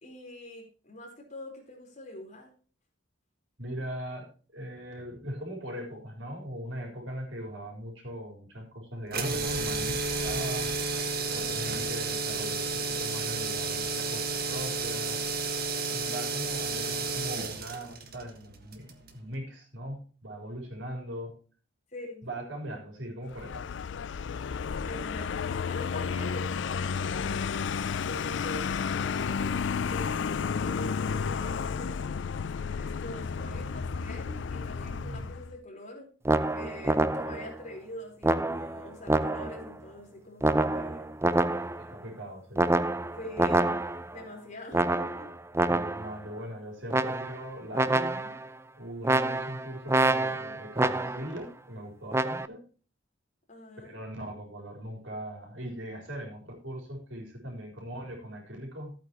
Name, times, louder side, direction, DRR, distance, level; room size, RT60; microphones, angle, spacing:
voice 1, 0.0-2.5 11.3-11.9 21.9-22.3 24.8-36.1 36.5-41.1 41.5-41.7 43.1-43.8 44.1-45.3 53.5-54.0, left 1 dB, 40° left, 0 dB, 4.2 m, -44 dB
voice 2, 3.6-10.7 11.3-15.2 15.9-21.4 22.2-23.6 34.8-35.3 41.8-42.7 45.7-48.3 48.8-52.6 53.8-58.9, equal, 75° right, 0 dB, 4.3 m, -40 dB
sound 1, 9.1-19.2, right 3 dB, 55° right, 1.6 m, -32 dB
Vehicle, 23.3-35.5, left 6 dB, 70° left, 0.4 m, -32 dB
sound 2, 36.2-37.6 38.2-39.7 40.4-41.9 42.6-44.2 44.7-46.2 46.9-47.5 47.7-48.5 49.0-51.4 52.1-52.5, right 2 dB, 15° right, 0.5 m, -27 dB
14.5 x 8.7 x 3.0 m, 0.37 s
head